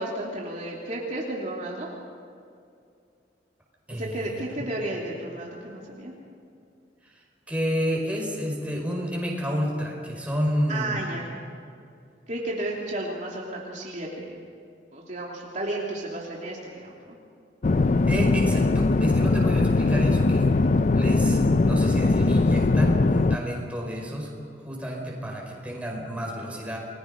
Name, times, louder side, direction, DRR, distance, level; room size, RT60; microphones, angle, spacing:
voice 1, 0.0-1.9 3.9-6.1 10.7-11.3 12.3-14.4 14.9-17.2, right 1 dB, 45° right, -3 dB, 3.0 m, -33 dB
voice 2, 3.9-4.6 7.0-7.1 7.5-11.0 18.1-20.5 20.9-24.3 24.6-26.8, equal, 10° right, -2 dB, 5.1 m, -30 dB
sound 1, 17.6-23.4, left 3 dB, 45° left, 0.5 m, -20 dB
30.0 x 20.5 x 5.3 m, 2.4 s
head